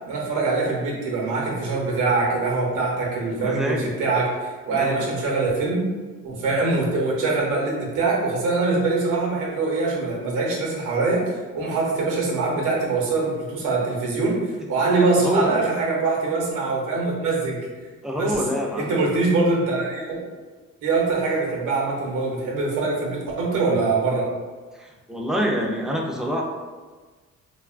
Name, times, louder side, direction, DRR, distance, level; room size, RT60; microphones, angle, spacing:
voice 1, 0.1-5.8 6.2-17.6 18.1-18.4 18.7-20.2 20.8-24.3, right 3 dB, 85° right, -3 dB, 0.8 m, -23 dB
voice 2, 3.3-3.9 4.7-5.0 15.2-15.7 18.0-19.0 24.7-26.4, equal, ahead, -1 dB, 0.3 m, -26 dB
2.9 x 2.3 x 2.4 m, 1.4 s
cardioid pair, 90°, 30 cm